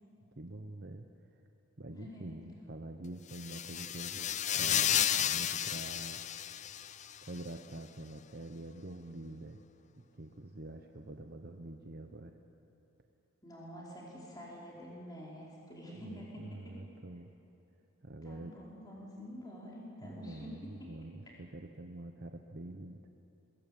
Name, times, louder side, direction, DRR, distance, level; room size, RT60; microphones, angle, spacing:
voice 1, 0.4-1.1 1.8-6.2 7.2-9.6 10.0-12.4 16.0-17.3 18.0-18.5 20.0-23.1, right 1 dB, 45° right, 5 dB, 0.9 m, -46 dB
voice 2, 1.9-2.4 13.4-16.8 18.2-21.1, equal, 20° left, -5 dB, 5.1 m, -48 dB
sound 1, 3.3-7.2, left 10 dB, 35° left, 0.5 m, -32 dB
22.0 x 21.5 x 8.8 m, 2.8 s
head